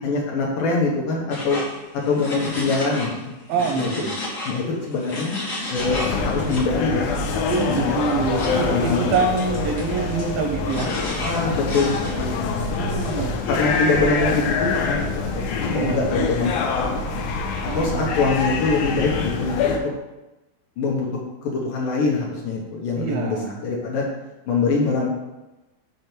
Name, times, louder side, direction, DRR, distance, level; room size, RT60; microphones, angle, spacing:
voice 1, 0.0-1.6 1.9-3.3 3.7-3.9 4.5-5.3 5.7-7.0 7.7-7.9 8.4-9.1 11.2-12.8 13.5-15.3 15.7-16.9 17.1-17.3 17.7-19.8 20.8-21.1 21.4-24.0 24.5-25.1, left 3 dB, 70° left, -3 dB, 2.3 m, -23 dB
sound 1, 1.3-3.2 3.5-6.7 7.5-8.6 9.1-12.4, left 2 dB, 55° left, 1.1 m, -33 dB
voice 2, 3.5-4.1 7.4-10.9 12.8-13.4 15.7-16.3 17.7-18.1 23.0-23.6, right 5 dB, 80° right, 3 dB, 2.2 m, -25 dB
sound 2, 5.8-19.8, left 4 dB, 90° left, 1.8 m, -25 dB
6.7 x 3.7 x 6.0 m, 1.0 s
omnidirectional pair, 4.5 m